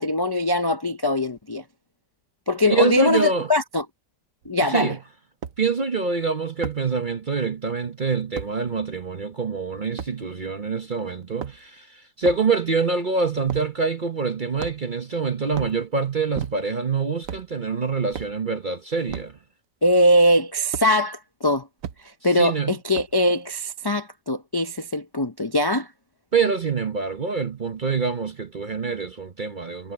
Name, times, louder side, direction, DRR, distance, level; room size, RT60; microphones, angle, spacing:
voice 1, 0.0-1.6 2.5-3.8 4.5-5.0 19.8-21.7 22.0-25.9, left 1 dB, 40° left, 0.3 m, -21 dB
voice 2, 2.7-3.5 4.7-5.0 5.6-19.3 22.4-22.7 26.3-29.9, right 4 dB, 40° right, 0.8 m, -25 dB
sound 1, 4.4-4.5 5.4-5.6 6.6-6.8 8.3-8.5 10.0-10.1 11.2-11.8 12.2-12.5 13.4-13.7 14.6-15.0 15.5-15.8 16.3-16.8 17.2-17.5 18.1-18.4 19.1-19.3 20.7-20.9 21.8-22.0 22.9-23.2, right 8 dB, 60° right, 1.2 m, -34 dB
omnidirectional pair, 1.7 m